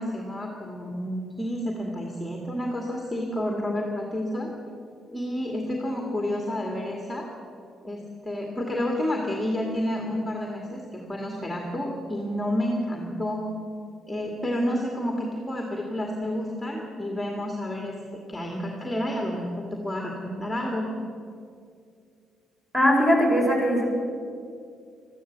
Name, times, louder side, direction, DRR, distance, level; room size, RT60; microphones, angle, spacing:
voice 1, 0.0-4.5 5.1-7.3 7.8-13.5 14.1-18.0 18.3-20.9, left 1 dB, 5° left, 0 dB, 2.1 m, -30 dB
voice 2, 22.7-23.9, equal, 15° right, 0 dB, 5.1 m, -20 dB
13.5 x 13.5 x 7.5 m, 2.3 s
cardioid pair, 90°, 0 cm